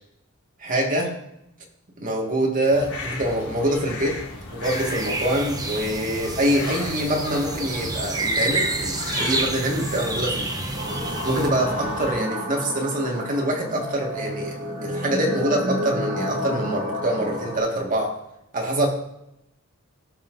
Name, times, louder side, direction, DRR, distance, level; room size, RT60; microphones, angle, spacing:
voice 1, 0.6-1.1 2.0-4.2 4.5-10.5 11.0-18.2 18.5-18.9, right 1 dB, 40° right, 0 dB, 1.7 m, -25 dB
sound 1, 2.7-12.1, left 2 dB, 65° left, 3.1 m, -36 dB
sound 2, 4.6-11.5, right 2 dB, 15° right, 0.9 m, -29 dB
sound 3, 10.7-17.6, equal, 55° right, 2.4 m, -30 dB
17.0 x 5.7 x 2.6 m, 0.84 s
head